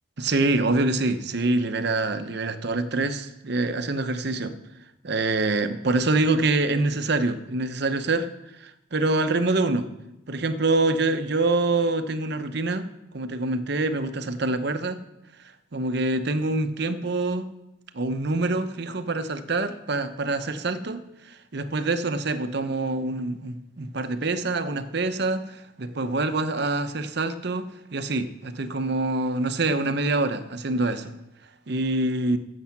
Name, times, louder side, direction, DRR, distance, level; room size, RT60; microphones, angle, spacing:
voice 1, 0.2-4.6 5.0-8.3 8.6-9.9 10.3-12.8 13.1-15.0 15.7-17.5 17.9-31.1 31.7-32.4, right 2 dB, 55° right, 10 dB, 0.8 m, -25 dB
14.0 x 7.6 x 5.9 m, 0.91 s
head